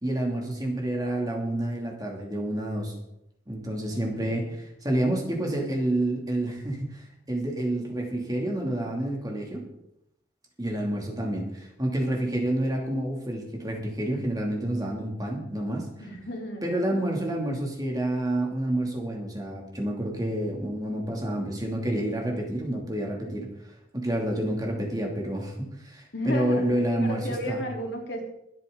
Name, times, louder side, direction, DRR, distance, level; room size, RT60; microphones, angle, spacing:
voice 1, 0.0-2.9 3.5-9.7 10.6-16.1 16.6-23.5 23.9-27.6, right 1 dB, 20° right, 0 dB, 2.6 m, -29 dB
voice 2, 3.9-4.5 16.0-16.7 26.1-26.7 27.0-28.2, equal, 75° left, -1 dB, 3.5 m, -34 dB
22.5 x 9.0 x 3.9 m, 0.80 s
head